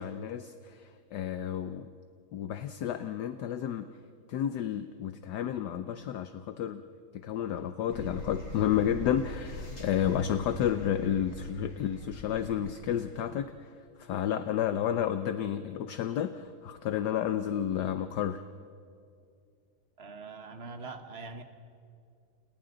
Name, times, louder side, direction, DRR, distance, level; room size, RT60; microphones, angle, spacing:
voice 1, 0.0-1.9 2.3-3.9 4.3-6.8 7.1-13.7 14.0-18.4, left 10 dB, 65° left, 10 dB, 1.2 m, -31 dB
sound 1, 7.9-13.2, left 1 dB, 40° left, 3.9 m, -43 dB
voice 2, 20.0-21.4, right 3 dB, 35° right, 7 dB, 1.4 m, -43 dB
30.0 x 29.5 x 3.9 m, 2.3 s
omnidirectional pair, 2.2 m